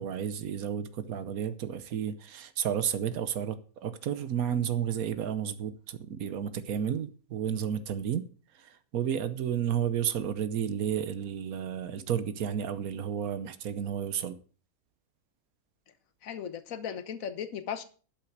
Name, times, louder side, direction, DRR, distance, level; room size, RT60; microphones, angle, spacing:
voice 1, 0.0-8.3 8.9-14.4, right 9 dB, 90° right, 1.4 m, -32 dB
voice 2, 16.2-17.8, left 8 dB, 70° left, 1.4 m, -36 dB
12.0 x 5.9 x 8.0 m
omnidirectional pair, 1.5 m